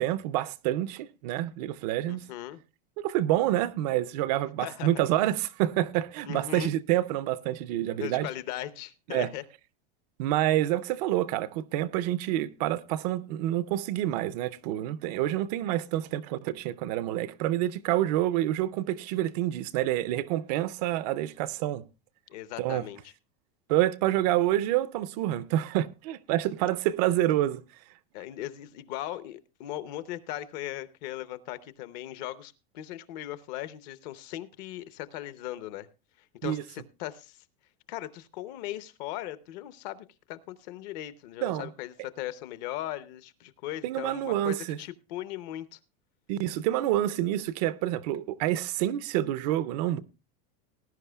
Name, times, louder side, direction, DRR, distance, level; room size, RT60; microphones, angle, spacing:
voice 1, 0.0-2.2 3.0-8.3 9.1-9.3 10.2-21.8 22.6-22.9 23.7-27.6 36.4-36.6 41.4-41.7 43.8-44.8 46.3-50.0, right 13 dB, 45° right, 0.5 m, -28 dB
voice 2, 2.1-2.6 4.6-4.9 6.2-6.7 8.0-9.4 22.3-23.0 28.1-35.9 36.4-37.4 37.9-45.8, left 13 dB, 45° left, 0.8 m, -38 dB
19.0 x 10.5 x 2.3 m
supercardioid pair, 175°, 30 cm